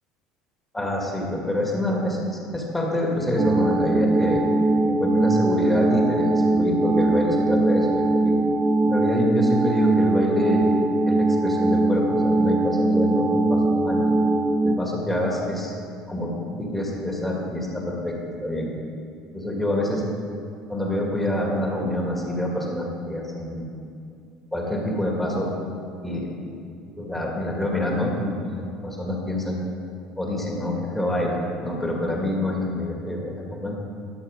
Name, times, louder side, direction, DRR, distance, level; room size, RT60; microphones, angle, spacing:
voice 1, 0.7-4.4 4.9-8.4 8.8-10.7 11.1-14.0 14.6-15.7 16.1-18.7 19.3-20.0 20.7-23.7 24.5-25.5 26.0-26.3 27.0-29.6 30.2-33.8, left 1 dB, 10° left, -1 dB, 2.1 m, -26 dB
sound 1, 3.4-14.8, right 2 dB, 25° right, 0.6 m, -21 dB
11.5 x 6.2 x 5.2 m, 2.4 s
hypercardioid pair, 80°, 2 cm